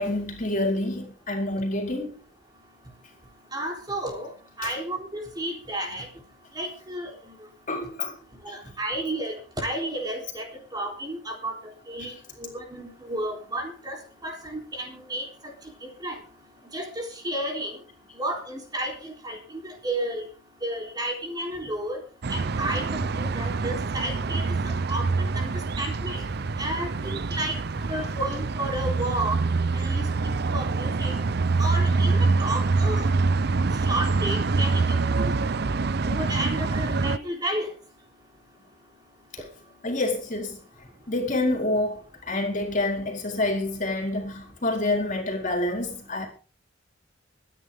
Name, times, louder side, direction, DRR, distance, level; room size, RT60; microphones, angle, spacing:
voice 1, 0.0-2.2 4.6-4.7 7.7-8.2 8.5-8.8 12.0-12.1 39.8-46.3, left 2 dB, 40° left, 4.1 m, -28 dB
voice 2, 3.5-4.3 4.6-6.1 6.6-7.4 8.4-11.6 11.9-15.5 15.8-16.2 16.7-17.8 18.2-20.2 20.6-22.0 22.3-26.2 26.6-29.4 29.7-31.1 31.6-33.1 33.6-35.5 36.0-37.7, right 1 dB, 20° right, 3.8 m, -32 dB
sound 1, 22.2-37.2, right 3 dB, 55° right, 0.6 m, -25 dB
24.5 x 10.0 x 3.7 m
head